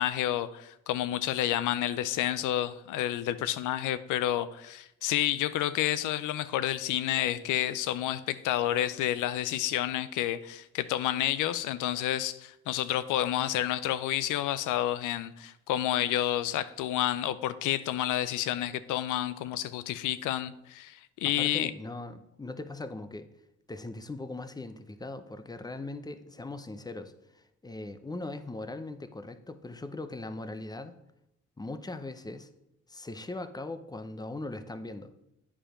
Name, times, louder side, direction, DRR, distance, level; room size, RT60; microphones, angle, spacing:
voice 1, 0.0-21.7, left 12 dB, 90° left, 15 dB, 0.6 m, -30 dB
voice 2, 21.2-23.3 23.7-31.0 31.6-32.5 32.9-35.3, left 2 dB, 15° left, 10 dB, 0.7 m, -40 dB
8.8 x 4.9 x 5.0 m, 0.84 s
cardioid pair, 90°, 30 cm